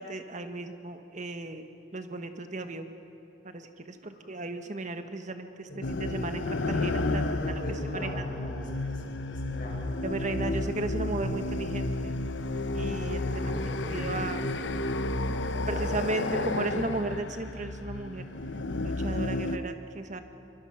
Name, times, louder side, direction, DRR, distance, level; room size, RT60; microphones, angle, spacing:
voice 1, 0.0-1.6 1.9-2.9 3.4-7.6 7.9-8.2 10.0-12.2 12.7-13.5 13.9-14.4 15.7-18.2 18.8-20.2, right 2 dB, 45° right, 8 dB, 1.3 m, -35 dB
voice 2, 5.7-6.1 7.1-9.8 13.2-15.9 16.3-16.5, left 1 dB, 50° left, -2 dB, 5.9 m, -41 dB
sound 1, 5.8-19.6, left 2 dB, 80° left, 0.8 m, -31 dB
24.5 x 24.0 x 5.8 m, 2.8 s
head